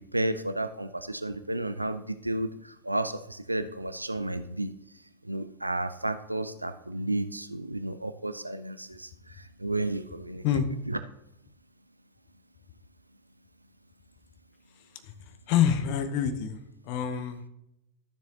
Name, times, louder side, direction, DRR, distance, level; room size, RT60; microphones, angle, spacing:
voice 1, 0.0-4.7 5.2-10.4 10.9-11.0, right 1 dB, 85° right, 12 dB, 0.4 m, -32 dB
voice 2, 15.5-16.6 16.8-17.4, left 9 dB, 45° left, 10 dB, 0.8 m, -26 dB
12.5 x 7.1 x 2.9 m, 0.83 s
figure-of-eight pair, 90°, 0 cm